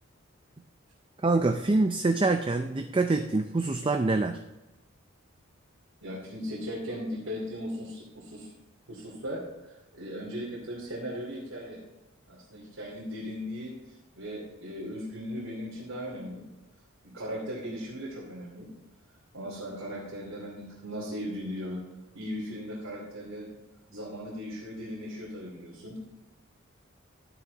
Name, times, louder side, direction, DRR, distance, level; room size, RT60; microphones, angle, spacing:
voice 1, 1.2-4.4, right 3 dB, 25° right, 7 dB, 0.4 m, -25 dB
voice 2, 6.0-8.5 8.9-11.8 12.3-16.5 17.0-18.7 19.3-21.8 22.1-23.5 23.9-26.1, equal, 80° right, -5 dB, 2.9 m, -38 dB
12.0 x 9.1 x 4.0 m, 0.98 s
head